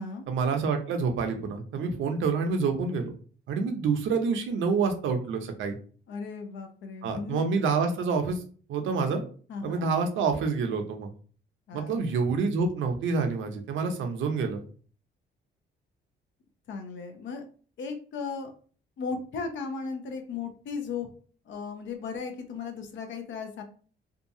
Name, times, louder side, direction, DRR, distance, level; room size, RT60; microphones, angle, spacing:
voice 1, 0.3-3.1 3.5-5.8 7.0-8.4 8.7-9.2 9.6-11.1 11.7-14.6, right 4 dB, 75° right, 5 dB, 0.6 m, -27 dB
voice 2, 6.1-7.4 9.5-9.9 11.7-12.0 16.7-17.4 17.8-18.5 19.0-21.1 21.5-23.6, left 5 dB, 70° left, 5 dB, 0.7 m, -36 dB
2.7 x 2.3 x 2.7 m, 0.42 s
cardioid pair, 90°, 20 cm